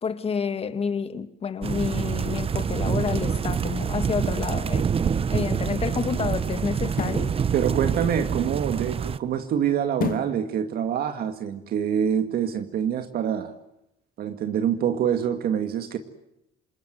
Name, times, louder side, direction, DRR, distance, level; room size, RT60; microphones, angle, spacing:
voice 1, 0.0-4.9 5.3-7.4, left 6 dB, 35° left, 2.0 m, -29 dB
sound 1, 1.6-9.2, right 7 dB, 35° right, 1.0 m, -26 dB
sound 2, 6.8-7.3 10.0-10.4 10.9-11.0, left 8 dB, 55° left, 2.1 m, -30 dB
voice 2, 7.5-13.5 14.2-16.0, right 8 dB, 65° right, 2.2 m, -25 dB
27.0 x 22.0 x 9.3 m
cardioid pair, 110°, 17 cm